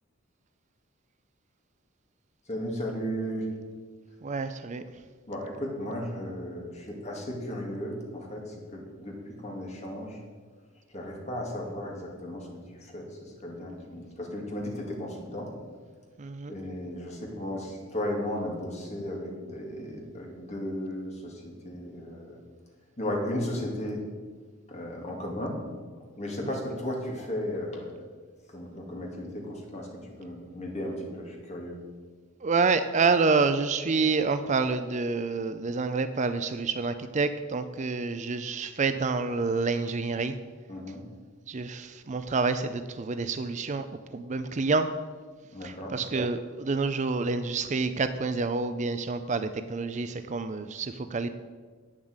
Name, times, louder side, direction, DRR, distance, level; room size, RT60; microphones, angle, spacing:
voice 1, 2.5-3.5 5.3-8.4 8.7-9.2 9.4-10.2 10.9-12.5 12.8-15.5 16.5-22.4 23.0-24.0 24.7-25.6 26.2-28.0 28.5-31.8 40.7-41.0 45.5-45.9, left 1 dB, 35° left, 0 dB, 2.4 m, -35 dB
voice 2, 4.2-4.8 16.2-16.5 26.4-26.6 32.4-40.4 41.5-43.9 44.1-44.9 45.6-51.3, right 4 dB, 35° right, 11 dB, 0.5 m, -28 dB
8.7 x 7.4 x 8.0 m, 1.5 s
head